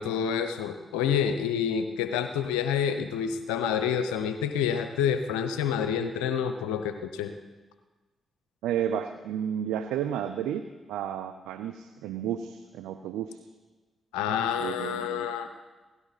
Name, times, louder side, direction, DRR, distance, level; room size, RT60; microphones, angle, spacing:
voice 1, 0.0-7.3 14.1-15.5, left 8 dB, 85° left, 8 dB, 0.7 m, -28 dB
voice 2, 8.6-10.6 10.9-13.4 14.6-15.3, right 9 dB, 80° right, 9 dB, 0.5 m, -32 dB
17.0 x 16.0 x 4.1 m, 1.3 s
hypercardioid pair, 40°, 0 cm